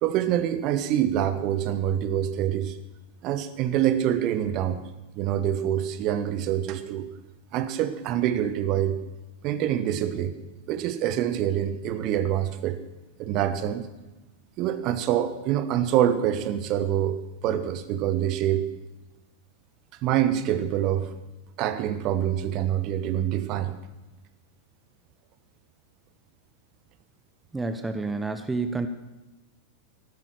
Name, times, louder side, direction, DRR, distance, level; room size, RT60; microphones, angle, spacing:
voice 1, 0.0-2.8 3.2-4.8 5.1-7.1 7.5-9.0 9.4-10.4 10.7-12.8 13.2-13.9 14.6-18.7 20.0-21.1 21.6-23.8, right 11 dB, 40° right, 12 dB, 1.2 m, -25 dB
voice 2, 27.5-28.9, right 3 dB, 10° right, 8 dB, 0.9 m, -29 dB
14.5 x 12.5 x 6.5 m, 1.1 s
figure-of-eight pair, 90°, 0 cm